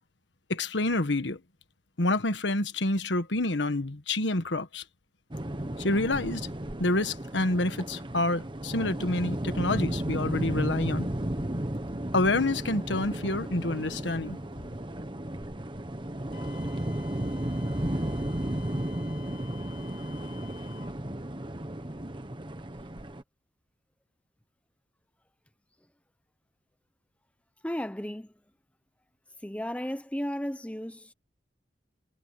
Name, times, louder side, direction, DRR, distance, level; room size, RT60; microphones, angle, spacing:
voice 1, 0.5-1.4 2.0-4.8 5.8-6.5 6.8-11.1 12.1-14.4, left 2 dB, 80° left, 1.5 m, -28 dB
sound 1, 5.3-23.2, right 1 dB, 30° right, 1.4 m, -34 dB
Wind instrument woodwind instrument, 16.3-21.0, left 10 dB, 55° left, 2.7 m, -52 dB
voice 2, 27.6-28.3 29.4-31.1, equal, 5° left, 0.9 m, -34 dB
head